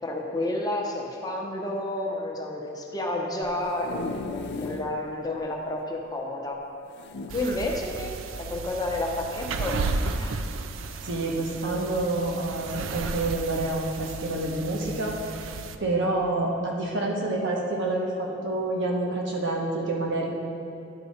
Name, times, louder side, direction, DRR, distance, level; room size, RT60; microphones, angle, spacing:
voice 1, 0.0-6.6 7.3-8.1 8.5-9.8 10.2-10.4, left 1 dB, 20° left, 0 dB, 0.8 m, -30 dB
sound 1, 3.4-4.9 5.4-5.5 5.7-5.8 6.9-7.8 8.5-8.7, left 3 dB, 60° left, 0.4 m, -37 dB
sound 2, 7.3-15.8, right 4 dB, 85° right, 0.4 m, -34 dB
voice 2, 11.0-15.1 15.8-20.3, right 2 dB, 65° right, -1 dB, 1.2 m, -28 dB
11.0 x 4.8 x 4.2 m, 2.8 s
head